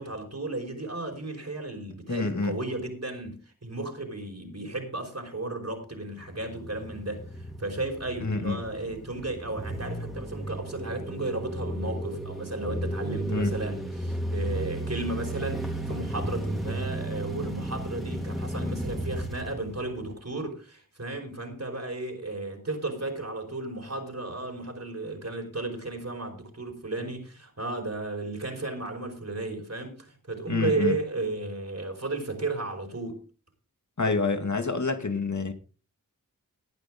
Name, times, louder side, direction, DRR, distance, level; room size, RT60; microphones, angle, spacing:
voice 1, 0.0-7.2 7.6-33.2, right 2 dB, 45° right, 5.1 m, -34 dB
voice 2, 2.1-2.6 8.2-8.6 13.3-13.5 30.5-31.0 34.0-35.5, left 3 dB, 50° left, 2.5 m, -27 dB
sound 1, 5.9-20.3, right 1 dB, ahead, 3.8 m, -34 dB
17.5 x 10.5 x 3.8 m
wide cardioid pair, 45°, 36 cm